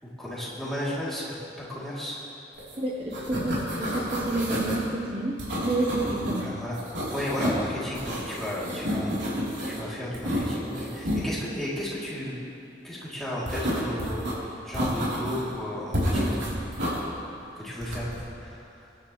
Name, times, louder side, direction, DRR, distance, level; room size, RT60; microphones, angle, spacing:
voice 1, 0.0-2.2 6.4-6.8 7.1-9.2 9.6-12.4 12.8-14.3 14.6-16.4 17.6-18.8, left 1 dB, ahead, -9 dB, 3.0 m, -34 dB
sound 1, 2.6-2.8 3.0-4.8 5.4-6.4 6.7-7.6 7.9-9.8 10.1-11.2 13.5-14.3 14.7-15.5 15.9-17.0 17.8-18.2, equal, 80° right, 3.5 m, -30 dB
voice 2, 2.8-6.5, right 2 dB, 30° right, -2 dB, 0.9 m, -29 dB
22.0 x 10.5 x 3.2 m, 2.7 s
head